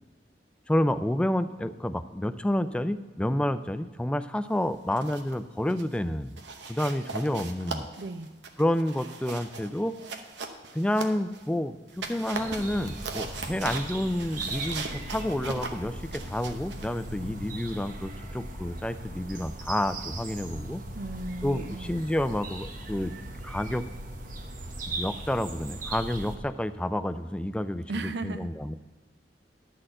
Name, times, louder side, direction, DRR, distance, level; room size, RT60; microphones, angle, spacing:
voice 1, 0.7-6.4 6.7-7.9 8.6-10.0 10.7-20.8 21.4-23.1 23.4-23.8 25.0-27.8 28.2-28.7, left 1 dB, 5° left, 12 dB, 0.3 m, -29 dB
sound 1, 4.7-5.4 5.7-6.0 6.4-11.5 11.9-17.8, right 4 dB, 90° right, 0.9 m, -40 dB
voice 2, 8.0-8.3 20.9-22.1 27.9-28.5, right 2 dB, 70° right, 11 dB, 0.6 m, -36 dB
sound 2, 12.3-26.4, right 2 dB, 50° right, 0.9 m, -39 dB
11.5 x 4.2 x 7.7 m, 1.3 s
head